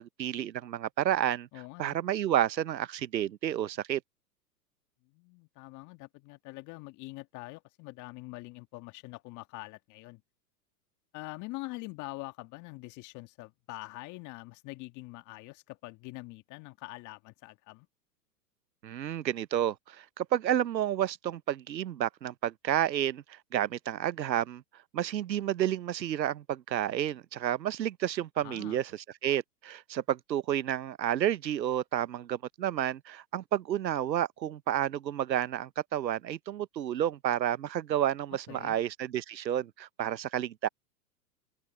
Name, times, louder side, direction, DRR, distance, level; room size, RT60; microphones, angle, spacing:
voice 1, 0.0-1.5 1.8-4.0 18.8-24.6 24.9-28.9 29.2-40.7, right 11 dB, 90° right, 0.9 m, -30 dB
voice 2, 1.5-2.0 5.1-10.2 11.1-17.9 28.4-28.8 38.5-38.8, left 22 dB, 35° left, 1.7 m, -44 dB
hypercardioid pair, 115°, 50 cm